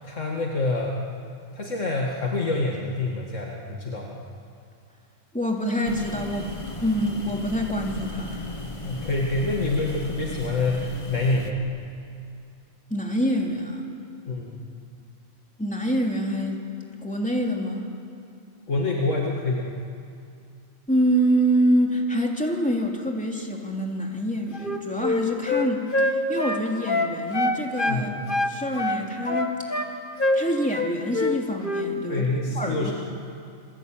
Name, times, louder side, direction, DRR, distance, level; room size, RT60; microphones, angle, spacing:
voice 1, 0.0-1.0 1.5-4.2 8.8-11.6 14.3-14.5 18.7-19.7 27.9-28.1 32.1-32.9, left 2 dB, 70° left, -2 dB, 2.5 m, -26 dB
voice 2, 5.3-6.5 6.8-8.5 12.9-13.8 15.6-16.6 17.0-17.9 20.9-29.9 30.3-32.3 32.5-32.9, equal, 5° left, 0 dB, 3.2 m, -26 dB
sound 1, 5.8-11.5, left 2 dB, 25° left, 1.7 m, -36 dB
Wind instrument woodwind instrument, 24.5-28.0 28.3-29.9 30.2-30.4 30.7-31.4 31.6-31.9, left 2 dB, 40° left, 1.8 m, -25 dB
28.0 x 22.0 x 9.0 m, 2.4 s
omnidirectional pair, 1.3 m